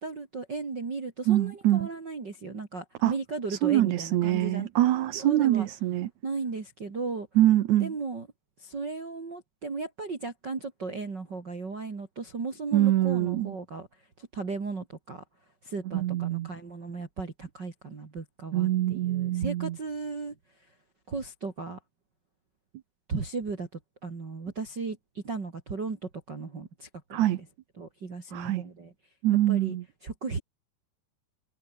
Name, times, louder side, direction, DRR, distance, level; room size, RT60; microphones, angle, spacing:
voice 1, 0.0-4.7 5.2-5.7 6.2-7.3 7.8-8.3 8.6-13.9 14.2-15.2 15.6-20.3 21.1-21.8 23.1-23.7 24.0-27.4 27.8-28.9 29.5-29.8 30.0-30.4, right 4 dB, 30° right, 2.9 m, -36 dB
voice 2, 1.3-1.9 3.0-3.1 3.5-6.1 7.4-7.9 12.7-13.5 15.9-16.5 18.5-19.8 27.1-27.4 28.3-28.6 29.2-29.8, right 14 dB, 75° right, 1.7 m, -24 dB
omnidirectional pair, 4.7 m